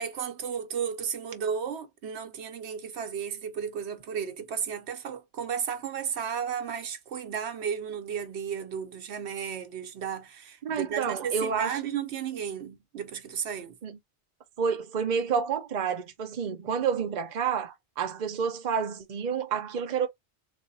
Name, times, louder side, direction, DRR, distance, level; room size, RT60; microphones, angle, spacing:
voice 1, 0.0-13.8, right 7 dB, 75° right, 0.9 m, -34 dB
voice 2, 10.6-11.8 13.8-14.0 14.6-20.1, right 6 dB, 45° right, 0.7 m, -29 dB
3.4 x 2.1 x 3.9 m
omnidirectional pair, 1.1 m